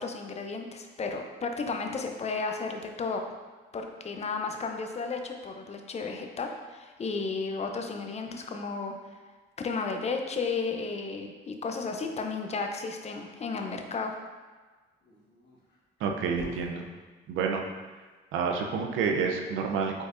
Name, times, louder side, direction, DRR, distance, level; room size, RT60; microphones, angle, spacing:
voice 1, 0.0-3.2 3.7-8.9 9.6-14.1, left 4 dB, 35° left, 4 dB, 0.5 m, -33 dB
Dog, 11.7-13.3 14.9-16.7, left 2 dB, 65° left, 1.4 m, -49 dB
voice 2, 16.0-16.9 17.3-17.7 18.3-20.0, right 5 dB, 85° right, 2 dB, 0.5 m, -29 dB
4.9 x 4.0 x 2.5 m, 1.3 s
cardioid pair, 90°, 20 cm